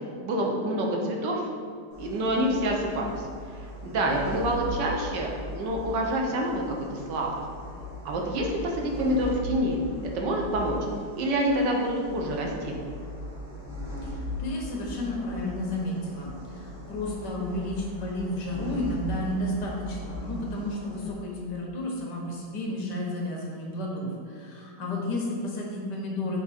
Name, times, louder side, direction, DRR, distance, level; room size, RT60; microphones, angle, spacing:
voice 1, 0.2-1.4 2.0-3.2 3.8-6.6 6.9-7.3 8.0-9.8 10.1-10.8 11.2-12.8, right 1 dB, 80° right, 0 dB, 1.5 m, -27 dB
sound 1, 1.9-21.1, left 1 dB, 65° right, 2.4 m, -39 dB
voice 2, 14.0-26.4, left 1 dB, 75° left, -1 dB, 1.7 m, -32 dB
6.0 x 4.2 x 4.1 m, 2.1 s
omnidirectional pair, 1.9 m